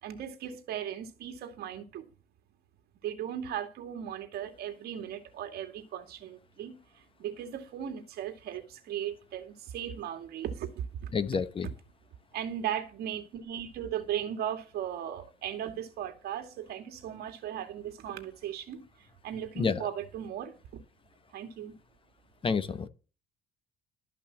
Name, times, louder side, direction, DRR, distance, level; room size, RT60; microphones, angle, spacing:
voice 1, 0.0-2.1 3.0-11.1 12.3-20.5 21.3-21.7, right 10 dB, 70° right, 2.4 m, -37 dB
voice 2, 11.1-11.7 19.6-19.9 22.4-22.9, left 5 dB, 30° left, 1.1 m, -29 dB
13.0 x 5.8 x 7.3 m
cardioid pair, 110°, 17 cm